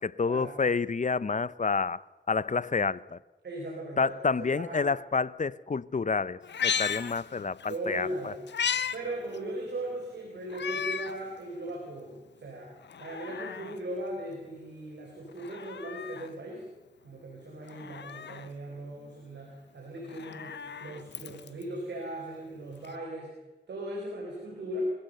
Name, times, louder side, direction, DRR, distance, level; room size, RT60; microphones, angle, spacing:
voice 1, 0.0-2.0 2.3-3.2 4.0-8.3, left 4 dB, 45° left, 0.7 m, -29 dB
voice 2, 3.4-4.9 7.7-8.4 8.9-12.7 13.0-16.7 17.0-23.3 23.7-24.9, right 1 dB, 85° right, 4.4 m, -38 dB
Meow, 6.4-7.8 8.1-9.0 9.3-9.4 10.5-11.2 11.7-11.8 12.8-13.8 15.3-16.3 17.7-18.5 20.0-21.6 22.8-22.9, left 7 dB, 85° left, 0.9 m, -35 dB
24.5 x 16.0 x 6.7 m
cardioid pair, 45°, 18 cm